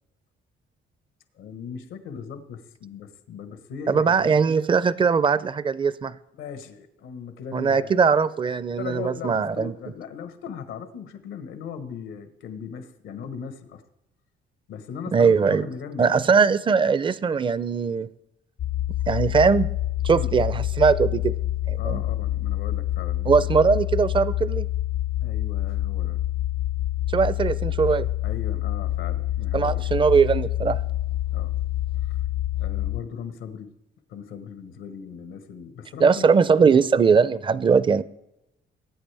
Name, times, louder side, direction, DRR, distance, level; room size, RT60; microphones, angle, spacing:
voice 1, 1.4-4.3 6.3-8.0 8.8-13.8 14.7-16.5 20.1-20.4 21.8-23.5 25.2-26.2 28.2-29.9 31.3-31.5 32.0-32.2 32.6-33.7 34.1-36.9, left 7 dB, 90° left, 1.2 m, -38 dB
voice 2, 3.9-6.1 7.5-9.7 15.1-15.7 16.0-18.1 19.1-19.7 20.0-21.3 21.7-22.0 23.3-24.7 27.1-28.1 29.5-30.8 36.0-38.0, right 5 dB, 25° right, 0.4 m, -20 dB
sound 1, 18.6-33.0, left 14 dB, 50° left, 0.4 m, -27 dB
19.0 x 8.7 x 3.4 m
cardioid pair, 90°, 20 cm